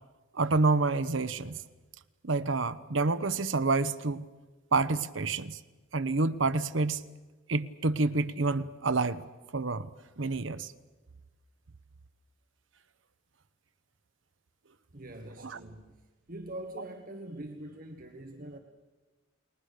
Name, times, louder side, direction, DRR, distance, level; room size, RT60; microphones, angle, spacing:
voice 1, 0.3-1.6 2.2-4.3 4.7-5.6 5.9-7.0 7.5-9.2 9.5-9.9 10.2-10.7 15.4-15.6, right 3 dB, 70° right, 12 dB, 1.0 m, -28 dB
voice 2, 14.9-15.9 16.3-18.6, right 1 dB, 45° right, 4 dB, 1.6 m, -43 dB
29.5 x 20.5 x 6.7 m, 1.2 s
head